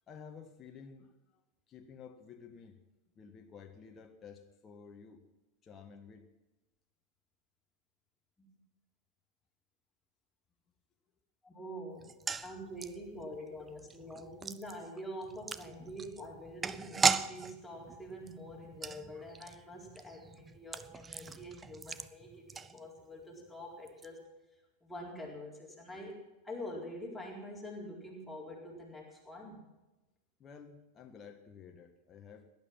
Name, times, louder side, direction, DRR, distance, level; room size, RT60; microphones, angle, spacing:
voice 1, 0.1-1.4 1.7-2.8 3.1-5.2 5.6-6.3 30.4-32.5, left 6 dB, 25° left, 4 dB, 1.4 m, -52 dB
voice 2, 11.4-12.1 12.4-24.3 24.8-29.7, equal, ahead, -3 dB, 4.3 m, -46 dB
sound 1, 12.0-23.2 23.5-23.6 23.9-24.1, right 5 dB, 15° right, 0.6 m, -38 dB
18.0 x 11.0 x 6.0 m, 1.0 s
figure-of-eight pair, 90°, 0 cm